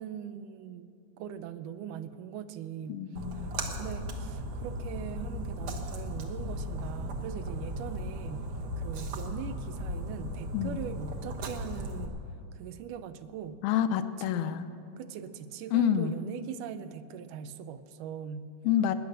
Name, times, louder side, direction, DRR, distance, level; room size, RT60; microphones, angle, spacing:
voice 1, 0.0-3.1 3.3-12.2 12.5-13.6 14.3-14.7 15.0-18.5, right 8 dB, 80° right, 12 dB, 2.1 m, -41 dB
voice 2, 2.9-3.5 10.5-10.8 13.6-14.7 15.7-16.1 18.7-18.9, left 10 dB, 80° left, 10 dB, 1.9 m, -27 dB
Splash splatter, 3.2-12.1, equal, 55° right, 1.6 m, -36 dB
19.0 x 10.0 x 6.5 m, 2.5 s
omnidirectional pair, 3.9 m